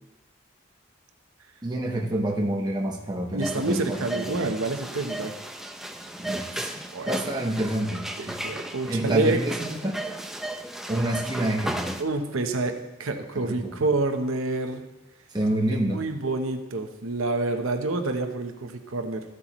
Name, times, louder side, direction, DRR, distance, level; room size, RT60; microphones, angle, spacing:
voice 1, 1.6-4.5 5.1-5.2 6.2-6.7 7.1-8.4 8.9-10.0 10.9-11.9 13.4-13.7 15.3-16.0, right 1 dB, 20° right, 0 dB, 1.0 m, -28 dB
voice 2, 3.3-5.3 6.9-7.4 8.2-9.4 12.0-12.7 13.0-14.8 15.7-19.2, right 2 dB, 85° right, 6 dB, 0.8 m, -28 dB
sound 1, 3.4-12.0, right 1 dB, ahead, 0.4 m, -35 dB
13.5 x 8.1 x 3.0 m, 1.0 s
head